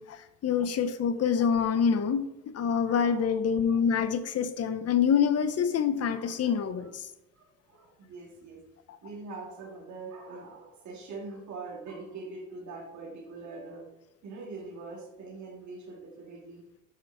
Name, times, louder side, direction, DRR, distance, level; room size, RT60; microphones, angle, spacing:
voice 1, 0.0-7.1 8.9-9.0, left 7 dB, 55° left, 0.8 m, -26 dB
voice 2, 2.9-3.4 3.7-3.8 6.1-6.7 7.4-8.6 9.0-13.9 14.2-16.7, right 3 dB, 70° right, 2.4 m, -43 dB
8.2 x 5.6 x 3.5 m
cardioid pair, 90°, 30 cm